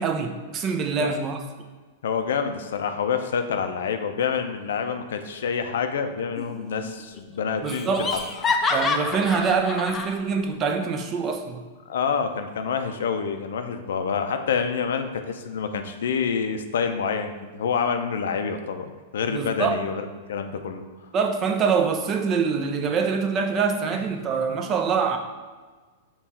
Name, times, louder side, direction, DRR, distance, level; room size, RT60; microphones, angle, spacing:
voice 1, 0.0-1.4 7.6-8.1 8.7-11.6 19.3-19.8 21.1-25.2, right 5 dB, 30° right, 5 dB, 0.5 m, -24 dB
voice 2, 2.0-8.1 8.4-8.5 11.9-20.8 23.9-24.0, left 6 dB, 80° left, 7 dB, 0.4 m, -27 dB
Laughter, 6.4-6.9 7.2-7.3 7.7-10.1, left 4 dB, 20° left, 0.4 m, -27 dB
5.5 x 2.3 x 4.1 m, 1.4 s
hypercardioid pair, 120°, 0 cm